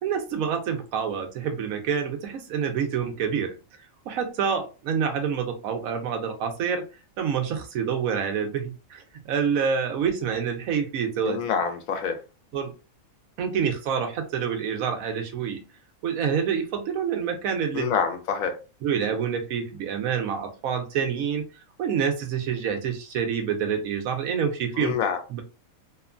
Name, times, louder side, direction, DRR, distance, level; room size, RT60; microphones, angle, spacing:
voice 1, 0.0-3.5 4.1-6.8 7.2-11.4 12.5-12.7 13.4-15.6 16.0-17.9 18.8-21.4 21.8-24.9 25.3-25.4, right 7 dB, 85° right, 5 dB, 1.0 m, -27 dB
voice 2, 11.2-12.2 17.7-18.5 24.8-25.2, left 7 dB, 80° left, 6 dB, 1.0 m, -26 dB
2.9 x 2.2 x 2.3 m, 0.32 s
omnidirectional pair, 1.5 m